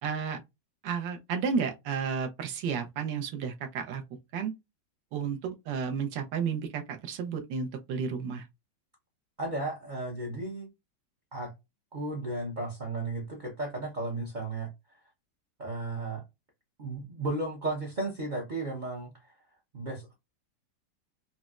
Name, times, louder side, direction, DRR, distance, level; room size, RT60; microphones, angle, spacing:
voice 1, 0.0-0.4 0.8-4.0 4.3-4.5 5.1-8.5, right 6 dB, 80° right, 1.3 m, -32 dB
voice 2, 9.4-10.7 11.3-11.5 11.9-15.0 15.6-16.2 16.8-19.3 19.7-20.1, right 2 dB, 50° right, 0.5 m, -34 dB
4.0 x 2.0 x 2.3 m
omnidirectional pair, 1.9 m